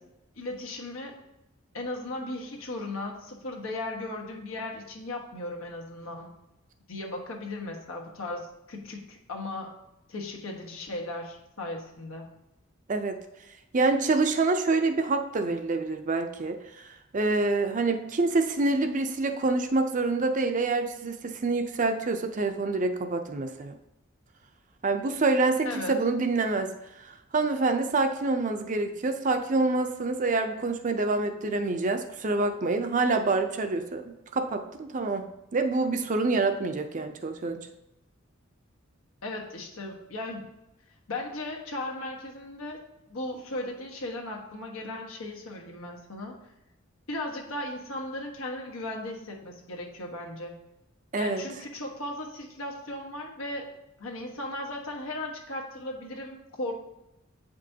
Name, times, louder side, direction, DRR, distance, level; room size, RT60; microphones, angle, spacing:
voice 1, 0.4-1.2 1.7-6.3 6.9-9.8 10.1-12.3 25.6-25.9 39.2-40.5 41.1-42.8 43.1-46.3 47.1-50.5 51.2-53.7 54.0-56.7, left 2 dB, 80° left, 0 dB, 1.3 m, -36 dB
voice 2, 13.7-16.6 17.1-23.8 24.8-26.7 27.0-35.3 35.5-37.7 51.1-51.4, right 3 dB, 40° right, 7 dB, 0.5 m, -26 dB
8.2 x 5.2 x 2.8 m, 0.90 s
head